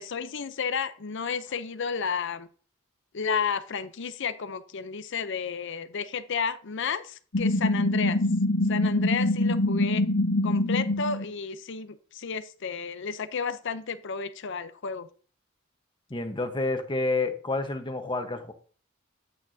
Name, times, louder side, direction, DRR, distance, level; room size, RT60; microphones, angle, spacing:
voice 1, 0.0-2.5 3.1-8.2 8.7-10.0 10.4-15.1, left 6 dB, 65° left, 12 dB, 0.6 m, -32 dB
sound 1, 7.3-11.2, left 1 dB, 90° left, 1.0 m, -24 dB
voice 2, 16.1-18.5, left 3 dB, 25° left, 6 dB, 1.0 m, -29 dB
8.9 x 8.3 x 2.7 m, 0.41 s
head